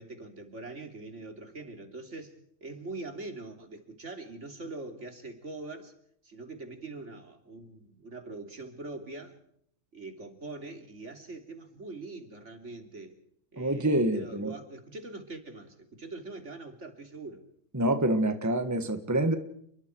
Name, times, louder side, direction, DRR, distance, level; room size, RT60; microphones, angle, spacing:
voice 1, 0.0-2.4 2.6-5.9 6.2-9.4 9.9-13.2 13.5-17.4, right 2 dB, 65° right, 5 dB, 3.5 m, -43 dB
voice 2, 13.6-14.5 17.7-19.4, right 1 dB, 15° right, 8 dB, 1.6 m, -26 dB
30.0 x 22.0 x 4.7 m, 0.67 s
omnidirectional pair, 1.3 m